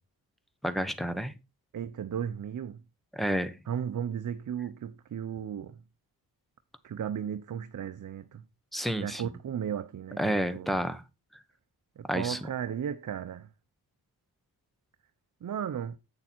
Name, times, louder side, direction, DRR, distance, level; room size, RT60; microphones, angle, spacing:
voice 1, 0.6-1.3 3.1-3.6 8.7-9.2 10.2-11.0 12.1-12.4, equal, ahead, 1.1 m, -30 dB
voice 2, 1.7-2.8 3.7-5.8 6.8-8.4 9.0-10.8 12.0-13.5 15.4-16.0, right 8 dB, 55° right, 0.7 m, -35 dB
8.7 x 6.8 x 4.4 m
cardioid pair, 90°, 37 cm